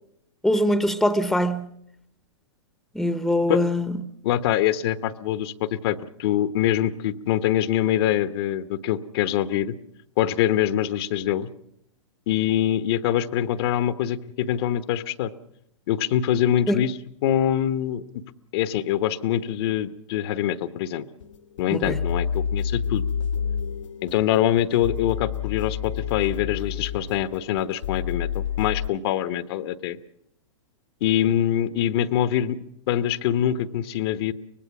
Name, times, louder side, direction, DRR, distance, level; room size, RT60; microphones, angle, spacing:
voice 1, 0.4-1.7 2.9-4.0 16.7-16.8 21.7-22.0, left 1 dB, ahead, 1.0 m, -23 dB
voice 2, 4.2-9.7 10.2-11.5 12.3-15.3 15.9-17.0 17.2-18.0 18.5-21.0 21.6-23.0 24.0-30.0 31.0-32.6 32.9-34.3, left 11 dB, 50° left, 1.1 m, -24 dB
sound 1, 21.2-28.9, left 7 dB, 80° left, 1.4 m, -29 dB
24.5 x 19.5 x 6.0 m
hypercardioid pair, 120°, 16 cm